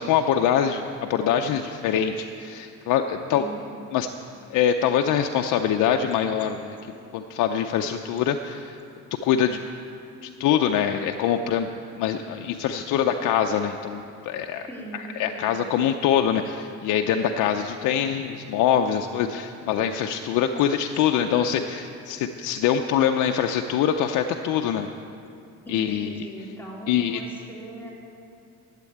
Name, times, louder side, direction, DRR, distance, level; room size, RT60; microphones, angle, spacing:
voice 1, 0.0-3.4 3.9-4.1 4.5-6.8 7.1-8.8 9.2-9.6 10.2-11.7 12.0-14.7 14.9-24.9 25.7-26.3 26.9-27.2, left 9 dB, 90° left, 5 dB, 0.6 m, -24 dB
voice 2, 3.3-3.7 14.7-15.7 25.6-27.9, right 1 dB, 5° left, -4 dB, 3.3 m, -39 dB
12.0 x 8.2 x 9.1 m, 2.5 s
cardioid pair, 90°, 30 cm